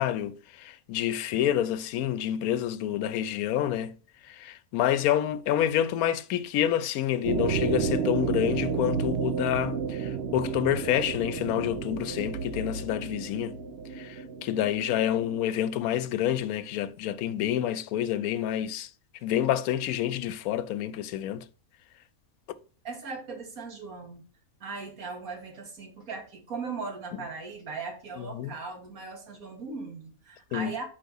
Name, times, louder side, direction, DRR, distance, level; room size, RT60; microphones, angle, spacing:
voice 1, 0.0-3.9 4.2-13.5 13.9-18.9 19.2-21.4 28.2-28.5 30.5-30.7, left 11 dB, 90° left, 1.0 m, -28 dB
sound 1, 7.2-15.4, right 6 dB, 55° right, 0.8 m, -31 dB
voice 2, 22.8-24.2 24.6-30.8, right 4 dB, 80° right, 1.9 m, -38 dB
5.3 x 4.6 x 5.3 m
omnidirectional pair, 1.5 m